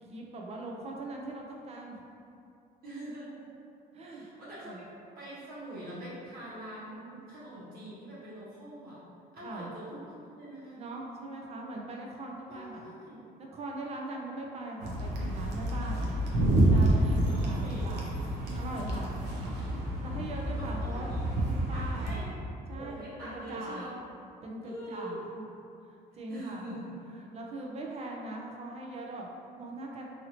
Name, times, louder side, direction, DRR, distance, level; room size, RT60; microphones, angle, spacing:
voice 1, 0.0-2.0 3.9-4.2 4.6-4.8 9.4-9.7 10.8-12.9 13.4-16.1 16.7-19.2 20.0-21.1 21.5-22.4 22.7-23.0 23.2-23.8 24.4-25.4 25.8-26.6 27.3-29.3 29.6-30.0, right 2 dB, 40° right, 0 dB, 0.5 m, -41 dB
voice 2, 2.8-3.5 3.9-4.7 5.2-9.0 9.3-10.8 12.5-13.3 16.9-18.0 20.1-20.7 21.0-21.2 21.7-22.4 22.7-23.9 24.6-25.2 26.3-27.0, right 1 dB, 60° right, -10 dB, 1.1 m, -44 dB
sound 1, 14.8-22.1, right 1 dB, 85° right, 0.6 m, -28 dB
2.7 x 2.7 x 2.8 m, 2.6 s
cardioid pair, 110°, 17 cm